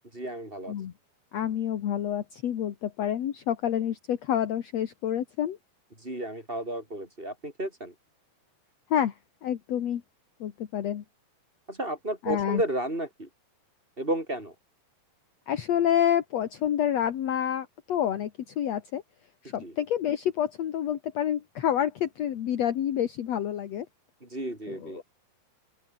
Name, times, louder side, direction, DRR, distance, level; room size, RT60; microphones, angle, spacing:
voice 1, 0.1-0.7 6.0-7.9 11.7-13.3 14.0-14.5 19.6-19.7 24.2-25.0, right 1 dB, 10° right, 4.9 m, -32 dB
voice 2, 1.3-5.6 8.9-9.1 9.4-10.0 10.4-11.0 12.2-12.6 15.5-19.0 19.4-23.9 24.7-25.0, left 10 dB, 55° left, 2.0 m, -28 dB
open air
omnidirectional pair, 4.9 m